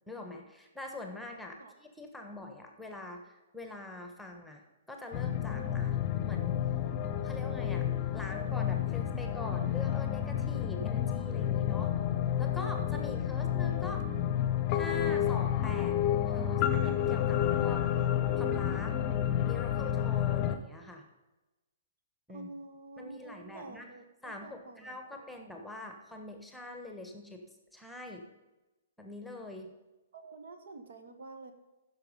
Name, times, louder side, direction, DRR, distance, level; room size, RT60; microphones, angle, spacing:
voice 1, 0.1-6.0 6.2-6.7 7.2-7.9 8.1-11.9 12.4-14.0 14.7-16.0 16.3-18.1 18.4-19.0 19.4-21.0 22.3-22.5 23.0-23.9 24.2-27.4 27.7-28.2 29.0-29.7, left 2 dB, ahead, 3 dB, 1.3 m, -44 dB
sound 1, 5.1-20.6, left 10 dB, 35° left, 0.8 m, -30 dB
voice 2, 22.3-25.3 30.1-31.5, right 3 dB, 60° right, 7 dB, 1.4 m, -48 dB
15.0 x 6.2 x 5.3 m, 1.1 s
figure-of-eight pair, 120°, 0 cm